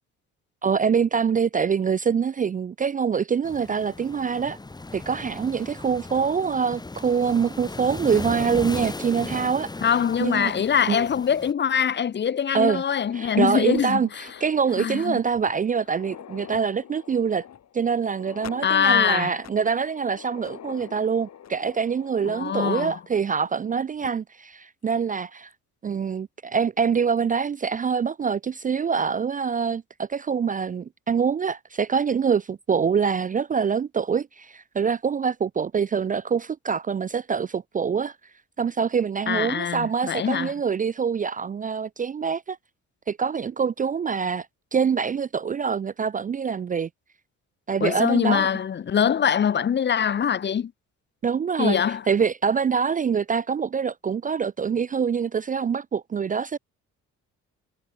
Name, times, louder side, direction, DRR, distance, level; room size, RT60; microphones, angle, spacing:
voice 1, 0.6-4.6 4.9-9.7 10.2-10.5 10.9-11.1 12.5-12.8 13.1-17.4 17.7-25.5 25.8-38.2 38.6-42.6 43.1-44.5 44.7-46.9 47.7-48.5 51.2-51.8 52.1-56.6, right 6 dB, 30° right, 0.4 m, -25 dB
sound 1, 3.4-11.5, left 3 dB, 15° left, 1.0 m, -37 dB
voice 2, 9.8-14.0 14.8-15.2 18.6-19.4 22.2-23.0 39.3-40.5 47.8-50.7 51.6-52.0, left 8 dB, 35° left, 0.7 m, -23 dB
sound 2, 12.9-23.7 24.0-24.1 24.9-25.0 25.5-25.6 26.9-27.2, left 9 dB, 60° left, 5.4 m, -45 dB
cardioid pair, 90°, 30 cm